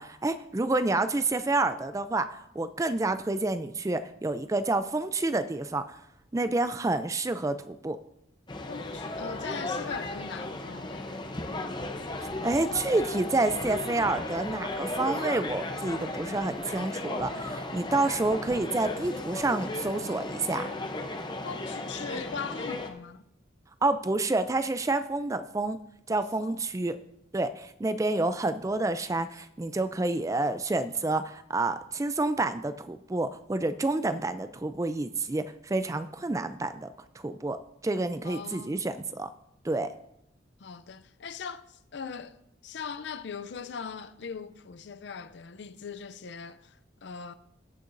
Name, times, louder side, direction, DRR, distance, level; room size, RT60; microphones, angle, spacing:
voice 1, 0.0-6.0 6.3-8.0 12.4-20.7 23.8-25.8 26.1-27.0 27.3-36.9 37.2-37.6 37.8-39.3 39.6-39.9, right 2 dB, 15° right, 0.3 m, -29 dB
sound 1, 8.5-22.9, left 2 dB, 25° left, 0.7 m, -35 dB
voice 2, 8.7-11.1 21.4-23.2 26.1-26.6 38.2-38.8 40.6-42.4 42.6-47.3, left 6 dB, 60° left, 0.5 m, -40 dB
17.5 x 6.8 x 2.6 m
head